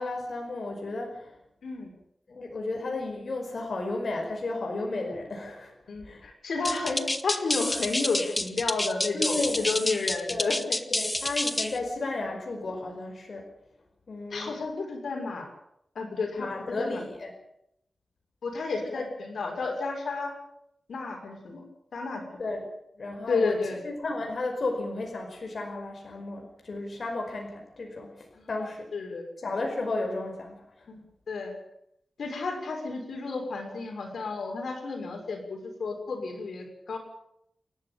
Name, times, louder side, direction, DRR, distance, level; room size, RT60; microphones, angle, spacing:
voice 1, 0.0-1.4 2.3-5.7 6.0-6.3 9.1-9.7 10.3-10.5 10.9-13.5 14.1-14.6 16.4-17.3 22.4-22.7 23.0-23.6 23.8-28.9 29.4-30.9, left 2 dB, 55° left, 2 dB, 5.2 m, -33 dB
voice 2, 5.9-10.8 14.3-15.5 15.9-17.0 18.4-20.3 20.9-21.6 21.9-22.4 23.3-23.8 28.3-29.2 30.9-31.0 31.3-31.5 32.2-37.0, left 4 dB, 85° left, 3 dB, 6.4 m, -32 dB
sound 1, 6.6-11.8, left 1 dB, 15° left, 1.4 m, -29 dB
29.0 x 12.0 x 8.9 m, 0.76 s
wide cardioid pair, 105°, 0 cm